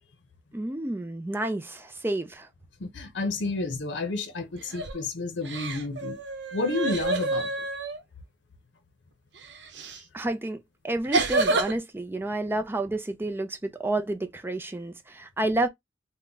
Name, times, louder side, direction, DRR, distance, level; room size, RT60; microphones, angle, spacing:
voice 1, 0.5-2.5 10.1-10.6 10.8-15.7, right 2 dB, 10° right, 0.4 m, -30 dB
voice 2, 2.8-6.2 6.5-7.5, left 3 dB, 70° left, 0.7 m, -30 dB
sound 1, 4.6-5.0 5.4-8.0 9.8-10.0 11.1-11.7, right 3 dB, 70° right, 0.8 m, -28 dB
3.4 x 2.1 x 3.8 m
head